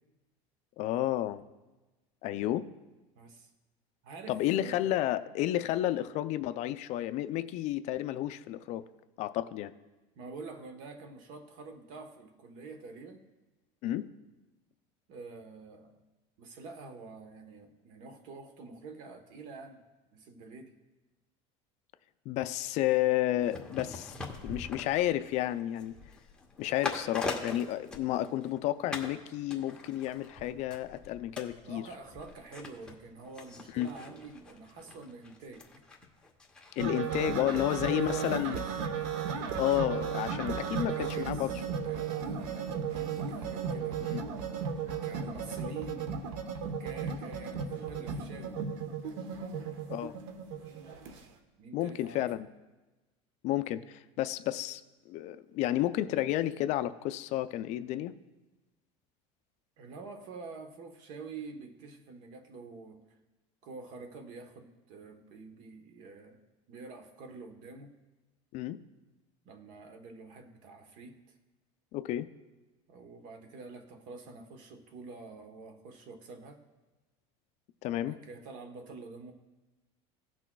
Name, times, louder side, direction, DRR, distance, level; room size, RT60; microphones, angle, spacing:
voice 1, 0.8-1.4 2.2-2.7 4.3-8.8 9.2-9.7 13.8-14.1 22.3-24.1 24.4-25.9 26.6-31.8 33.7-33.9 36.8-38.6 39.6-41.5 44.1-44.2 49.9-50.1 51.7-52.5 53.4-54.8 55.1-58.1 68.5-68.8 71.9-72.3 77.8-78.1, left 14 dB, 50° left, 12 dB, 0.4 m, -31 dB
voice 2, 3.2-3.5 4.0-4.8 10.2-13.2 15.1-16.0 16.4-19.8 20.1-20.7 31.6-35.7 37.6-38.7 40.7-41.5 41.8-44.0 45.0-46.1 46.6-49.3 51.6-52.3 59.8-63.0 63.6-66.4 66.7-67.9 69.4-71.2 72.9-76.6 77.9-79.3, right 3 dB, 55° right, 7 dB, 1.1 m, -47 dB
sound 1, 23.4-28.6 28.9-29.2 29.5-38.6 38.9-39.0, left 3 dB, 5° left, 0.9 m, -43 dB
sound 2, 36.8-51.2, right 6 dB, 80° right, 0.9 m, -35 dB
17.0 x 6.1 x 2.3 m, 1.1 s
cardioid pair, 145°, 15 cm